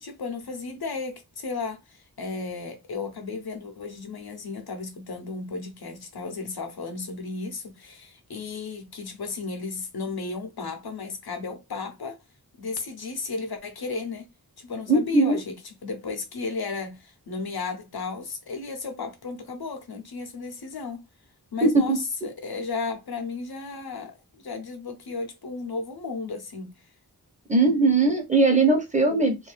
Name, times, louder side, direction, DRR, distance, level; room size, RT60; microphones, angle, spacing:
voice 1, 0.0-12.2 12.6-14.3 14.6-21.0 21.5-26.7, left 4 dB, 80° left, 0.8 m, -34 dB
voice 2, 14.9-15.4 21.6-22.0 27.5-29.4, right 3 dB, 20° right, 1.0 m, -20 dB
2.6 x 2.3 x 3.2 m
wide cardioid pair, 75°, 37 cm